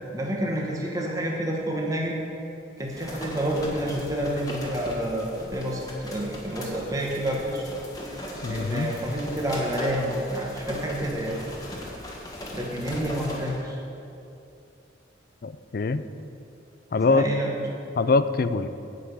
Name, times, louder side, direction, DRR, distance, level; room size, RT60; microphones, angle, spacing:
voice 1, 0.0-2.2 2.8-7.7 8.5-11.4 12.5-13.8 17.0-17.6, right 1 dB, 20° right, -2 dB, 1.3 m, -29 dB
sound 1, 2.8-13.6, left 1 dB, 20° left, 1.6 m, -38 dB
voice 2, 8.4-8.9 15.4-16.0 16.9-17.3 18.0-18.7, left 3 dB, 50° left, 12 dB, 0.4 m, -23 dB
10.0 x 5.9 x 8.2 m, 2.7 s
head